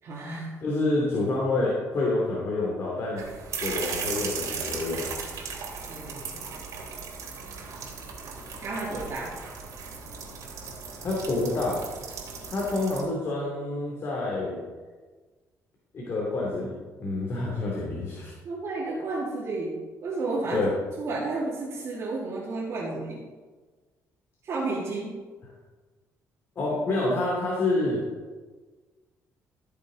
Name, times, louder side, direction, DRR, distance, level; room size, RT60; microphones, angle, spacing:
voice 1, 0.0-0.5 5.9-6.5 8.6-9.3 18.4-20.7 21.0-23.2 24.4-25.2, right 3 dB, 50° right, -7 dB, 2.8 m, -32 dB
voice 2, 0.6-3.2 3.6-5.0 11.0-11.8 12.5-14.6 15.9-18.3 20.5-20.7 26.5-28.0, left 2 dB, 45° left, -4 dB, 3.0 m, -27 dB
sound 1, 3.2-13.0, right 5 dB, 65° right, 3.3 m, -37 dB
14.5 x 6.7 x 5.2 m, 1.3 s
cardioid pair, 125°, 6 cm